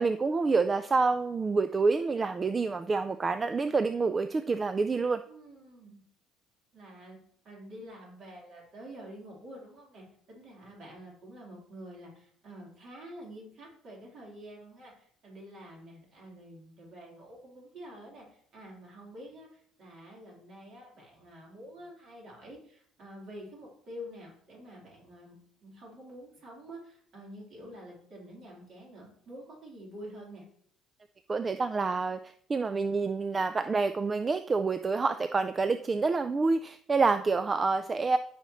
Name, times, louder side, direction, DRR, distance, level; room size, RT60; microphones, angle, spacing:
voice 1, 0.0-5.2 31.3-38.2, right 4 dB, 20° right, 10 dB, 0.3 m, -27 dB
voice 2, 5.3-6.0 6.7-7.2 7.4-30.4, equal, 50° right, -3 dB, 3.5 m, -48 dB
13.5 x 5.7 x 3.0 m, 0.64 s
cardioid pair, 140°, 0 cm